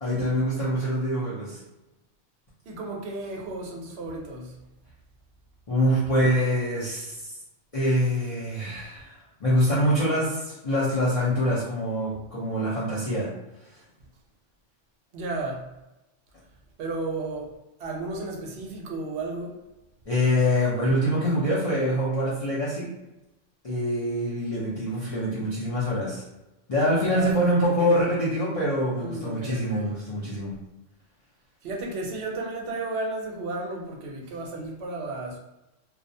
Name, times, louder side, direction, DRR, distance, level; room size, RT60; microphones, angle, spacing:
voice 1, 0.0-1.6 5.7-7.3 7.7-9.1 9.4-13.3 20.1-22.9 23.6-26.2 26.7-30.5, equal, 40° left, -9 dB, 0.5 m, -25 dB
voice 2, 2.7-4.5 15.1-15.7 16.8-17.5 17.8-19.6 27.0-28.0 29.0-29.9 31.6-35.4, right 2 dB, 65° right, 0 dB, 0.8 m, -33 dB
2.3 x 2.1 x 2.6 m, 0.96 s
omnidirectional pair, 1.3 m